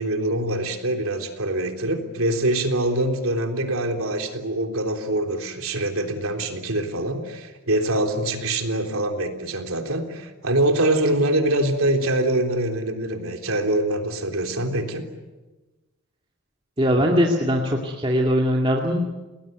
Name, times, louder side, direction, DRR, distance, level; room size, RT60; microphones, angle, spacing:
voice 1, 0.0-15.0, right 1 dB, 75° right, 4 dB, 3.6 m, -24 dB
voice 2, 16.8-19.0, equal, 25° right, 0 dB, 2.3 m, -21 dB
29.5 x 20.0 x 9.3 m, 1.2 s
head